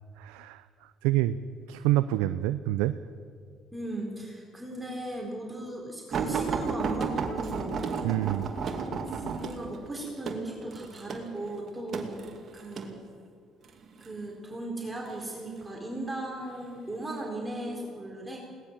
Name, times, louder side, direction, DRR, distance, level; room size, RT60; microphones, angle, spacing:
voice 1, 0.2-0.6 1.0-1.4 1.7-3.0 8.0-8.5, right 15 dB, 90° right, 12 dB, 0.5 m, -27 dB
voice 2, 3.7-7.8 9.1-12.3 12.5-13.0 14.0-18.4, right 1 dB, 15° right, -1 dB, 4.2 m, -37 dB
sound 1, 6.1-12.9 13.7-14.1 15.1-15.7 16.4-16.6 17.0-17.1, right 5 dB, 50° right, 2.6 m, -33 dB
21.0 x 18.0 x 7.4 m, 2.2 s
supercardioid pair, 80°, 0 cm